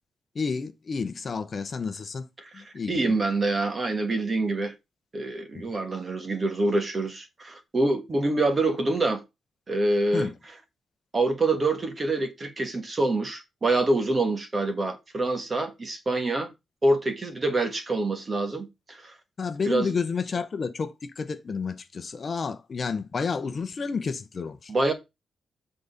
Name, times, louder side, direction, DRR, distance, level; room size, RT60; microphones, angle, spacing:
voice 1, 0.3-2.3 2.5-3.2 5.5-5.6 10.1-10.3 19.4-24.7, left 5 dB, 35° left, 0.8 m, -30 dB
voice 2, 2.4-4.7 5.1-9.2 9.7-10.3 11.1-16.5 16.8-19.1 19.7-19.9 24.7-24.9, right 2 dB, 25° right, 1.4 m, -26 dB
7.7 x 4.0 x 5.2 m
wide cardioid pair, 160°, 0 cm